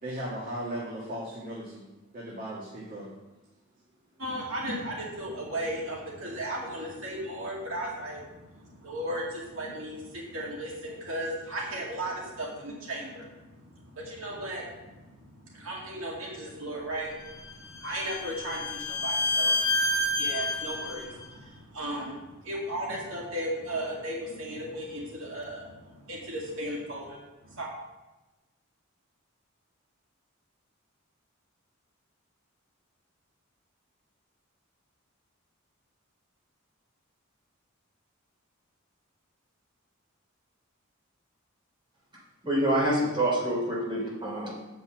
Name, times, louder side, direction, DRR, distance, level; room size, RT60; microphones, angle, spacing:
voice 1, 0.0-1.9 2.1-3.1, right 1 dB, 45° right, -6 dB, 2.0 m, -37 dB
voice 2, 4.2-8.2 8.8-13.2 14.0-14.6 15.5-17.1 17.8-19.5 20.2-21.2 21.7-22.1 22.4-25.6 26.1-27.2 27.6-27.7, right 1 dB, 70° right, -3 dB, 2.1 m, -35 dB
Bowed string instrument, 17.3-21.1, left 1 dB, 20° left, 1.2 m, -29 dB
voice 3, 42.4-44.5, right 1 dB, 25° right, -4 dB, 3.0 m, -26 dB
7.1 x 5.7 x 7.5 m, 1.1 s
head